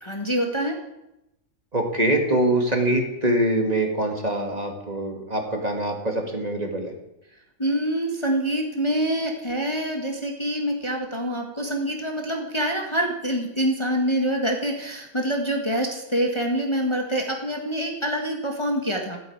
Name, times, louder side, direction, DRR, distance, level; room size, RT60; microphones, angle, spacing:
voice 1, 0.0-0.8 7.6-19.2, right 1 dB, 20° left, 1 dB, 1.7 m, -26 dB
voice 2, 1.7-6.9, right 1 dB, 30° right, 2 dB, 2.4 m, -24 dB
15.0 x 9.3 x 8.7 m, 0.89 s
omnidirectional pair, 1.4 m